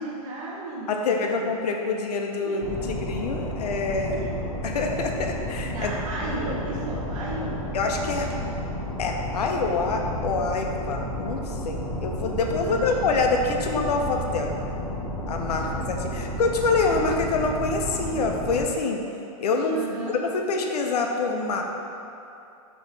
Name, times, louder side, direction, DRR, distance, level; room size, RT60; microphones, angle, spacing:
voice 1, 0.0-1.5 2.4-2.9 4.1-4.4 5.6-7.7 12.6-13.0 15.6-15.7 19.7-20.2, right 2 dB, 55° right, -5 dB, 0.8 m, -35 dB
voice 2, 0.9-4.2 4.6-5.9 7.7-8.3 9.0-14.6 15.3-19.0 19.4-21.6, left 3 dB, 85° left, 2 dB, 0.6 m, -26 dB
sound 1, 2.6-18.6, equal, 15° left, 0.6 m, -32 dB
5.1 x 3.0 x 3.3 m, 2.7 s
hypercardioid pair, 155°, 20 cm